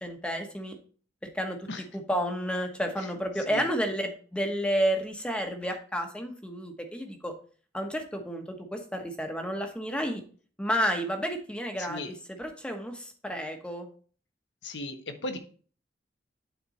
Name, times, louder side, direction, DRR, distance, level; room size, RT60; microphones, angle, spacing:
voice 1, 0.0-0.8 1.3-1.6 1.9-7.3 7.7-10.2 10.6-13.9, equal, 5° left, 4 dB, 1.0 m, -31 dB
voice 2, 11.8-12.1 14.6-15.4, left 1 dB, 90° left, 7 dB, 1.1 m, -36 dB
9.1 x 4.4 x 4.1 m, 0.43 s
head